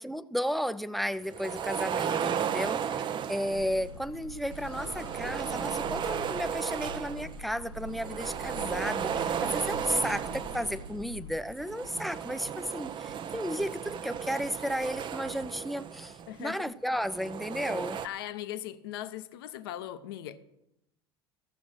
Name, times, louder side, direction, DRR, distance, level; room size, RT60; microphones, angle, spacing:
voice 1, 0.0-2.8 3.3-18.0, equal, ahead, 0.5 m, -33 dB
sound 1, 1.2-3.9 4.5-7.4 7.7-11.0 11.6-16.4 17.0-18.1, right 8 dB, 40° right, 0.7 m, -34 dB
sound 2, 3.5-11.4, left 1 dB, 90° left, 1.2 m, -44 dB
Accelerating revving vroom, 8.2-15.5, equal, 75° right, 0.9 m, -52 dB
voice 2, 9.9-10.2 16.3-16.7 18.0-20.4, left 12 dB, 70° left, 0.8 m, -39 dB
14.0 x 7.1 x 6.3 m
hypercardioid pair, 75°, 13 cm